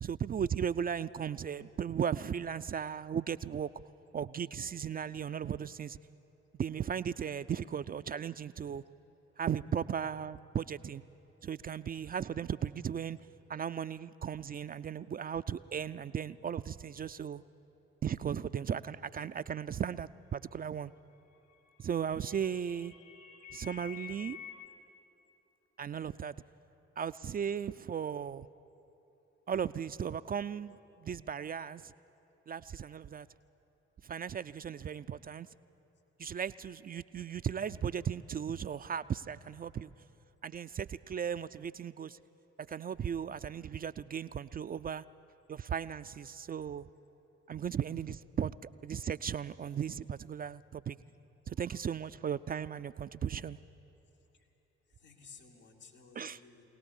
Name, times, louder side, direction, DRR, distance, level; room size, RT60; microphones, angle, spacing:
voice 1, 0.0-3.7 4.1-6.0 6.6-8.8 9.4-11.0 11.4-13.2 13.5-17.4 18.0-20.9 21.8-22.9 23.5-24.4 25.8-26.3 27.0-28.5 29.5-31.9 32.5-33.3 34.0-35.5 36.2-39.9 40.4-42.2 42.7-45.0 45.5-46.9 47.5-51.0 51.5-53.6 56.2-56.4, right 8 dB, 30° right, 13 dB, 0.4 m, -36 dB
sound 1, 21.5-24.7, left 9 dB, 65° left, 2.6 m, -49 dB
voice 2, 54.9-56.6, left 5 dB, 85° left, -3 dB, 2.5 m, -56 dB
23.5 x 18.0 x 7.2 m, 3.0 s
hypercardioid pair, 45°, 33 cm